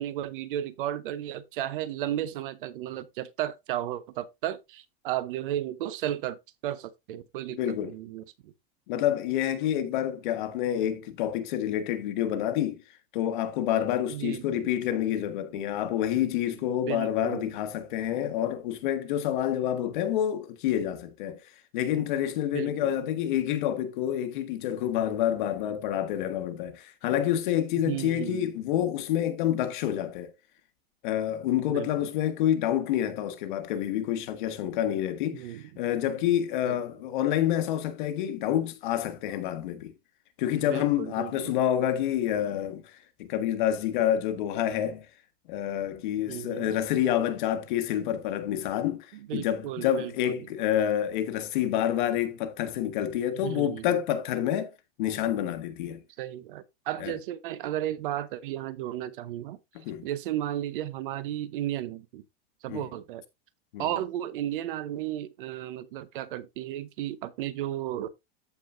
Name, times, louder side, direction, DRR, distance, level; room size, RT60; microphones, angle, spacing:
voice 1, 0.0-6.4 6.6-8.5 14.1-14.7 16.9-17.5 22.5-22.9 27.8-28.5 31.7-32.1 35.3-35.7 36.6-36.8 40.6-41.6 46.3-46.7 49.1-50.5 53.4-54.0 56.2-59.6 60.0-62.2 62.6-63.2 63.8-68.1, right 12 dB, 55° right, 0.8 m, -34 dB
voice 2, 7.6-7.9 8.9-12.8 13.1-21.4 21.7-30.3 31.0-39.9 40.4-45.0 45.5-54.7 55.0-56.0 57.0-57.2 59.8-60.1 62.7-62.8 63.7-63.8, left 11 dB, 50° left, 1.3 m, -28 dB
14.0 x 4.8 x 2.5 m
supercardioid pair, 175°, 31 cm